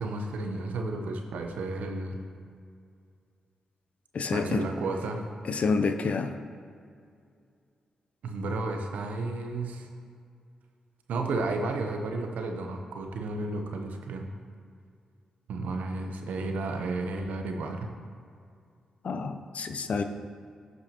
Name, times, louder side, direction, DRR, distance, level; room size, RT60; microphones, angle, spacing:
voice 1, 0.0-2.2 4.3-5.2 8.2-9.9 11.1-14.3 15.5-17.9, right 2 dB, 75° right, 3 dB, 0.8 m, -32 dB
voice 2, 4.1-4.6 5.5-6.3 19.0-20.0, left 4 dB, 60° left, 7 dB, 0.6 m, -28 dB
13.5 x 5.3 x 3.0 m, 2.3 s
hypercardioid pair, 40°, 3 cm